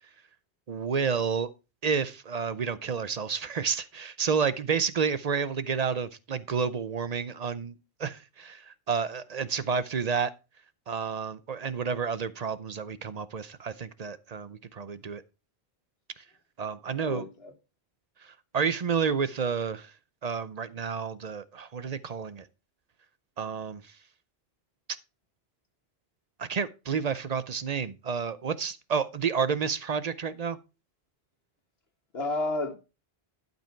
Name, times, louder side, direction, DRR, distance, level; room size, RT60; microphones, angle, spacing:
voice 1, 0.7-1.5 1.8-10.3 10.9-15.2 16.6-17.2 18.5-19.9 20.2-22.5 23.4-23.8 26.4-30.6, right 6 dB, 45° right, 0.6 m, -30 dB
voice 2, 17.0-17.5 32.1-32.8, left 2 dB, 70° left, 1.9 m, -31 dB
12.0 x 5.4 x 4.4 m
omnidirectional pair, 1.1 m